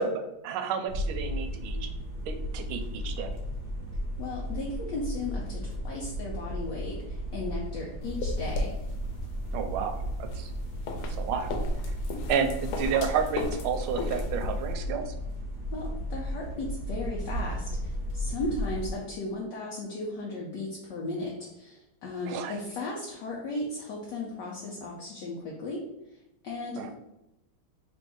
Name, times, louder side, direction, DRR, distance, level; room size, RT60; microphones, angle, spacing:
voice 1, 0.0-1.9 2.3-3.3 9.5-10.5 11.2-11.5 11.9-12.0 12.3-15.1 22.2-22.5 26.8-26.9, right 6 dB, 85° right, 6 dB, 1.4 m, -31 dB
sound 1, 0.9-18.9, equal, 35° right, 1.1 m, -35 dB
voice 2, 4.2-8.8 15.7-25.8 26.4-26.9, left 2 dB, 70° left, -2 dB, 1.2 m, -36 dB
sound 2, 8.0-14.7, left 2 dB, 85° left, 1.5 m, -35 dB
3.5 x 2.6 x 4.6 m, 0.88 s
omnidirectional pair, 2.3 m